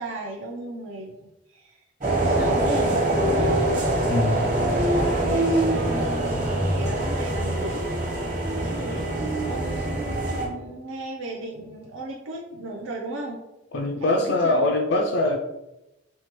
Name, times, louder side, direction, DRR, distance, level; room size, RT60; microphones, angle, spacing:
voice 1, 0.0-3.7 4.3-7.8 8.4-13.4 14.0-14.7, right 2 dB, 70° right, -2 dB, 0.5 m, -36 dB
sound 1, 2.0-10.5, right 1 dB, 40° right, 0.9 m, -24 dB
voice 2, 4.1-4.5 13.7-15.4, left 2 dB, 55° left, 1 dB, 0.3 m, -22 dB
4.5 x 2.2 x 2.9 m, 0.93 s
head